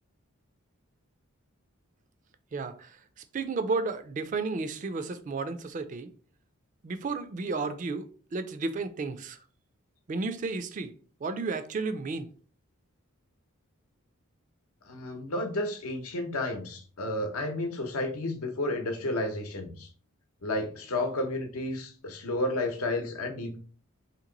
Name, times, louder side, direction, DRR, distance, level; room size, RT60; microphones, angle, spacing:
voice 1, 2.5-3.0 3.3-6.1 6.8-9.4 10.1-10.9 11.2-12.3, right 3 dB, 35° right, 0.3 m, -32 dB
voice 2, 14.9-19.9 20.4-23.6, left 1 dB, 90° left, 0.8 m, -32 dB
2.9 x 2.9 x 3.8 m
head